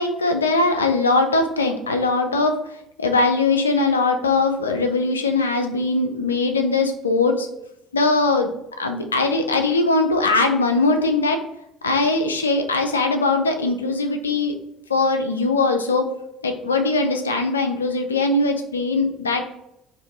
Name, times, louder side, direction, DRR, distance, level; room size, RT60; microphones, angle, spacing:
voice 1, 0.0-2.5 3.0-7.5 7.9-11.4 11.8-14.5 14.9-16.1 16.4-19.4, left 3 dB, 85° left, 6 dB, 0.3 m, -21 dB
2.7 x 2.5 x 3.7 m, 0.83 s
figure-of-eight pair, 60°, 0 cm